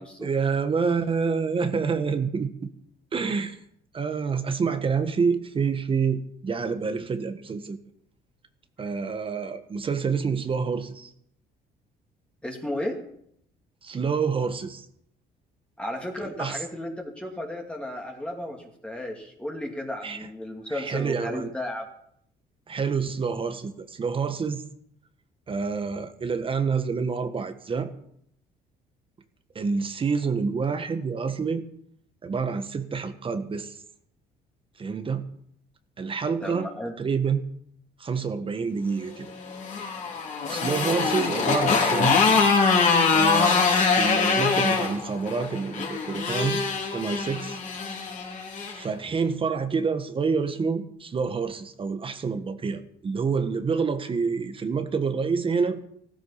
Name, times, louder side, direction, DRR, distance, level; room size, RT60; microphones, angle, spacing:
voice 1, 0.2-2.7 3.1-3.6 3.9-7.8 8.8-11.1 13.8-14.8 16.2-16.6 20.0-20.2 20.7-21.5 22.7-24.6 25.5-27.9 29.5-31.6 32.2-33.8 34.8-35.3 36.0-36.7 37.0-37.5 38.0-39.3 40.5-42.2 43.1-43.7 43.9-46.6 46.9-47.6 48.7-55.8, right 5 dB, 30° right, 9 dB, 1.4 m, -27 dB
voice 2, 12.4-13.0 15.8-21.9 36.4-37.0, left 1 dB, 5° left, 0 dB, 2.6 m, -34 dB
Motorcycle, 39.4-48.8, left 5 dB, 45° left, 3.9 m, -23 dB
15.5 x 14.5 x 5.7 m, 0.70 s
cardioid pair, 110°, 17 cm